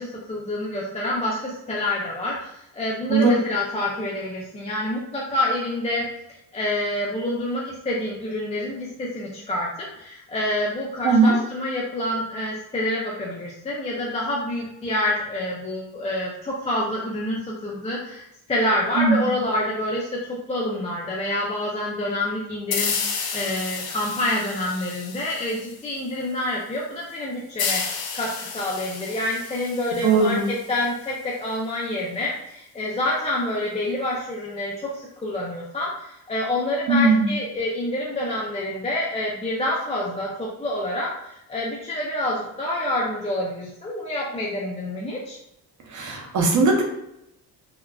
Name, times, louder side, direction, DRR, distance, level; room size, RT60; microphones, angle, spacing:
voice 1, 0.0-6.0 6.5-9.7 10.0-45.4, left 1 dB, 15° left, -4 dB, 0.4 m, -27 dB
voice 2, 11.0-11.4 19.0-19.3 30.0-30.5 36.9-37.3 45.9-46.8, right 3 dB, 45° right, 1 dB, 0.7 m, -18 dB
water evaporating on hot surface, 22.7-26.1 27.6-31.1, left 5 dB, 65° left, 0.6 m, -31 dB
3.4 x 2.3 x 2.3 m, 0.82 s
cardioid pair, 125°, 41 cm